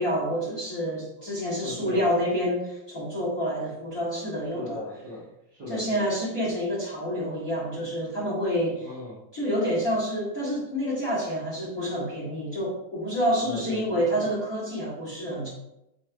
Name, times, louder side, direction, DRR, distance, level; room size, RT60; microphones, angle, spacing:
voice 1, 0.0-4.8 5.7-8.9 9.3-15.5, equal, 30° left, -8 dB, 1.8 m, -28 dB
voice 2, 1.6-2.2 4.5-6.1 8.7-9.2 13.4-14.3, left 2 dB, 40° right, -9 dB, 1.6 m, -38 dB
6.4 x 3.6 x 4.6 m, 0.85 s
omnidirectional pair, 4.0 m